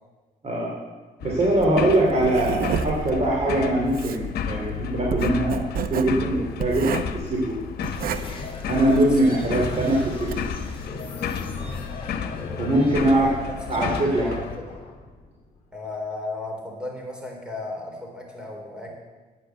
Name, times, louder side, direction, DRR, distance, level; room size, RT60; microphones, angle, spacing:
voice 1, 0.4-0.8 1.2-7.6 8.7-10.4 12.6-13.4 13.7-14.3, right 1 dB, 40° right, -3 dB, 2.7 m, -22 dB
sound 1, 1.2-14.6, left 7 dB, 80° left, 1.0 m, -33 dB
Writing, 1.6-10.5, right 7 dB, 65° right, 0.8 m, -31 dB
sound 2, 7.8-16.0, left 3 dB, 30° left, 3.2 m, -38 dB
voice 2, 9.1-9.6 11.5-11.8 13.0-13.3 13.8-14.7 15.7-18.9, left 1 dB, 5° right, 0 dB, 3.7 m, -35 dB
10.0 x 9.2 x 8.0 m, 1.3 s
cardioid pair, 100°, 16 cm